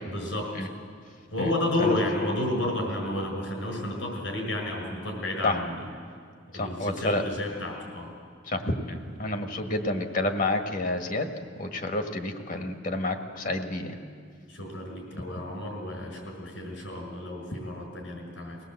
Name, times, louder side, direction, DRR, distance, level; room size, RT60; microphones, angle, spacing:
voice 1, 0.1-0.5 1.3-5.9 6.5-8.1 14.5-18.6, left 1 dB, 85° left, 1 dB, 6.0 m, -31 dB
voice 2, 6.5-7.2 8.5-11.3 11.6-14.0, left 2 dB, 45° left, 5 dB, 1.6 m, -29 dB
22.5 x 17.5 x 7.8 m, 2.1 s
head